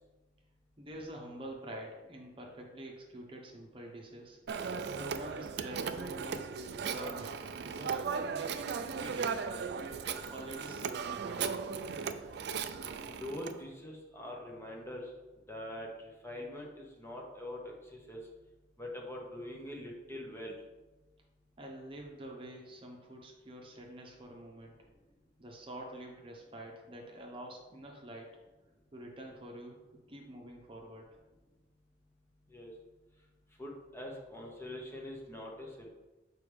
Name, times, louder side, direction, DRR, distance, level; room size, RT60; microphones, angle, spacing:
voice 1, 0.8-4.4 4.9-6.5 6.8-9.9 10.3-11.7 21.6-24.7 25.4-28.3 28.9-29.8 30.1-31.1, right 1 dB, 30° right, 0 dB, 0.9 m, -47 dB
Telephone, 4.5-13.6, right 6 dB, 65° right, 0.4 m, -37 dB
voice 2, 13.0-15.1 15.5-18.2 18.8-20.5 32.5-32.7 33.6-35.9, left 1 dB, 15° left, -1 dB, 1.0 m, -43 dB
6.9 x 4.5 x 3.4 m, 1.1 s
head